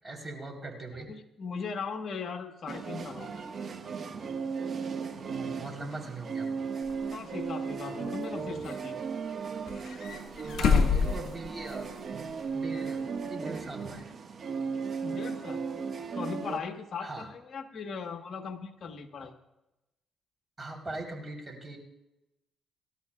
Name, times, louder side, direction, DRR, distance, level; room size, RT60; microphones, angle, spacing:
voice 1, 0.0-1.1 5.3-6.5 10.5-14.0 17.0-17.3 20.6-21.8, right 2 dB, 25° right, 1 dB, 3.8 m, -40 dB
voice 2, 1.1-3.5 7.1-9.0 15.0-15.6 16.1-19.3, left 5 dB, 50° left, 4 dB, 1.3 m, -38 dB
sound 1, 2.7-16.6, right 5 dB, 50° right, 1.5 m, -36 dB
sound 2, 6.9-7.0 7.8-8.8 9.7-12.0 12.3-12.4 14.0-14.1, left 6 dB, 75° left, 1.8 m, -28 dB
24.0 x 12.5 x 2.4 m, 0.92 s
cardioid pair, 90°, 0 cm